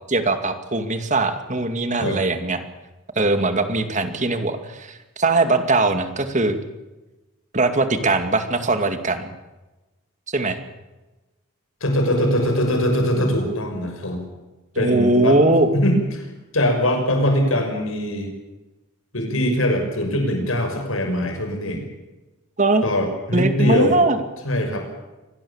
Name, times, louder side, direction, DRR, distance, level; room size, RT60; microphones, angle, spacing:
voice 1, 0.1-2.6 3.2-6.6 7.5-9.3 10.3-10.6 14.8-15.7 22.6-22.8 23.3-24.2, right 2 dB, 35° right, 8 dB, 2.4 m, -20 dB
voice 2, 11.8-14.2 14.8-15.4 15.7-16.3 16.5-18.3 19.1-21.8 22.8-24.0 24.4-24.9, equal, 75° left, 5 dB, 6.1 m, -21 dB
25.0 x 18.5 x 7.3 m, 1.1 s
head